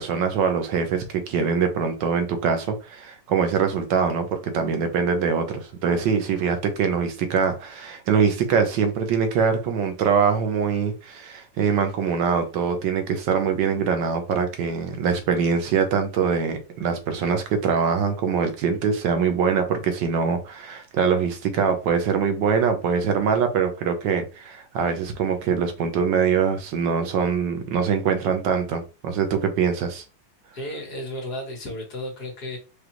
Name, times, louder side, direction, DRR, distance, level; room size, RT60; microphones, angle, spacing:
voice 1, 0.0-30.0, right 6 dB, 75° right, 1.4 m, -23 dB
voice 2, 30.5-32.6, left 1 dB, 55° left, 2.0 m, -33 dB
5.0 x 2.4 x 2.9 m
omnidirectional pair, 2.0 m